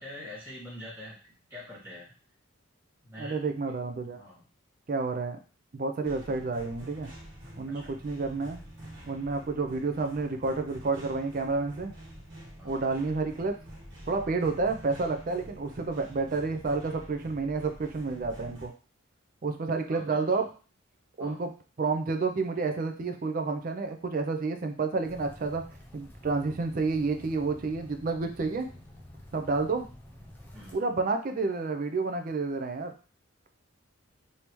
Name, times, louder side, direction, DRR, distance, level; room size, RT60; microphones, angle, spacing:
voice 1, 0.0-2.1 3.0-3.4 4.1-4.4 7.7-8.0 12.6-12.8 19.9-20.4 21.2-21.4 30.5-30.8, left 1 dB, 10° right, -7 dB, 1.8 m, -45 dB
voice 2, 3.2-4.2 4.9-5.4 5.7-7.1 7.6-8.6 9.0-11.9 12.6-13.5 14.1-18.7 19.4-20.4 21.2-21.5 21.8-25.6 25.9-28.7 29.3-29.8 30.7-32.9, right 3 dB, 40° right, 6 dB, 0.4 m, -30 dB
sound 1, 6.0-18.7, equal, 65° right, 1.2 m, -47 dB
sound 2, 25.0-30.8, left 1 dB, 10° left, 0.5 m, -49 dB
3.4 x 2.7 x 3.0 m, 0.37 s
head